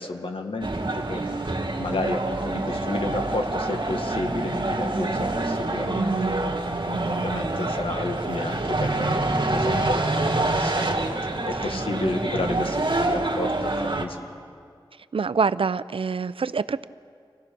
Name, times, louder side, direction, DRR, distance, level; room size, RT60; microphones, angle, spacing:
voice 1, 0.0-6.1 6.8-14.2, left 2 dB, 80° left, 4 dB, 1.8 m, -32 dB
sound 1, 0.6-14.1, right 2 dB, 65° right, 2.0 m, -26 dB
voice 2, 5.9-6.4 12.5-12.7 15.1-16.8, right 5 dB, 80° right, 16 dB, 0.5 m, -26 dB
27.0 x 17.0 x 6.1 m, 2.2 s
wide cardioid pair, 70°, 9 cm